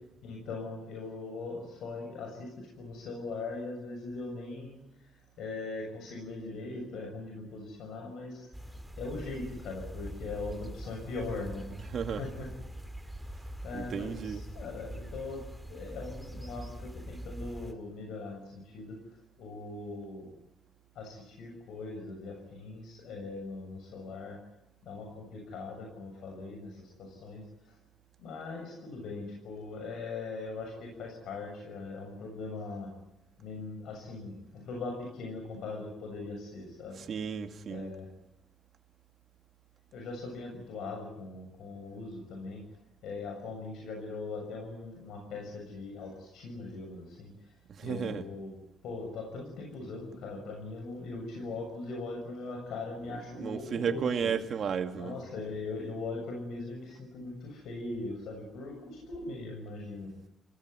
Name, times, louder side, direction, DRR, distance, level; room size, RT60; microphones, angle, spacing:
voice 1, 0.2-4.8 5.4-8.5 9.0-12.5 13.6-14.2 14.5-15.4 15.7-19.0 19.4-20.3 21.0-24.4 24.8-27.8 28.2-32.9 33.4-37.0 37.7-38.1 39.9-42.6 43.0-47.3 47.8-48.5 48.8-54.3 55.0-60.1, left 3 dB, 80° left, 1 dB, 7.1 m, -40 dB
sound 1, 8.5-17.7, right 1 dB, ahead, 2.1 m, -43 dB
voice 2, 11.9-12.2 13.7-14.4 37.0-37.9 47.7-48.3 53.1-55.2, right 7 dB, 50° right, 6 dB, 2.2 m, -33 dB
29.0 x 18.0 x 9.6 m, 0.86 s
cardioid pair, 135°, 0 cm